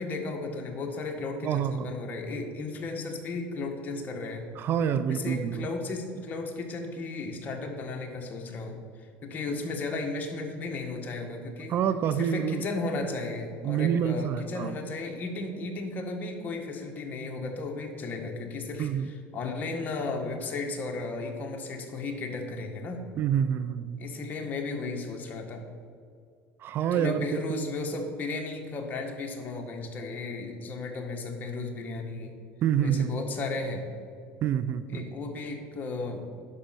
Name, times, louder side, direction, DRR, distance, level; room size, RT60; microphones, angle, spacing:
voice 1, 0.0-4.5 5.1-8.8 9.2-11.7 12.2-23.0 24.0-25.6 26.9-32.4 32.8-33.9 34.9-36.4, left 3 dB, 35° left, 2 dB, 1.7 m, -34 dB
voice 2, 1.4-1.9 4.5-5.7 11.7-12.6 13.6-14.8 18.8-19.1 23.2-24.0 26.6-27.7 32.6-33.1 34.4-35.1, right 8 dB, 50° right, 12 dB, 0.5 m, -27 dB
10.0 x 6.3 x 6.0 m, 2.3 s
supercardioid pair, 110°, 5 cm